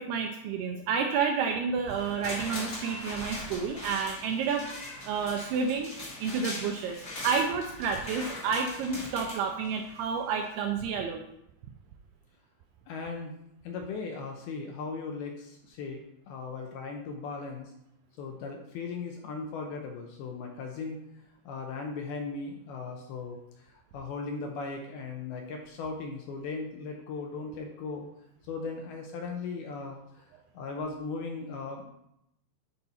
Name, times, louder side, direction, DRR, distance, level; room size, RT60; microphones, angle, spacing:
voice 1, 0.0-4.7 5.1-5.9 6.2-11.2, right 6 dB, 85° right, 3 dB, 2.3 m, -30 dB
sound 1, 1.9-10.0 10.4-10.5, left 1 dB, 45° left, 1.0 m, -40 dB
voice 2, 12.9-13.3 13.6-16.0 16.3-17.7 18.2-21.0 21.5-23.4 23.9-28.1 28.5-30.3 30.5-31.8, left 4 dB, 80° left, 2 dB, 2.3 m, -37 dB
10.5 x 4.3 x 4.3 m, 0.80 s
omnidirectional pair, 5.1 m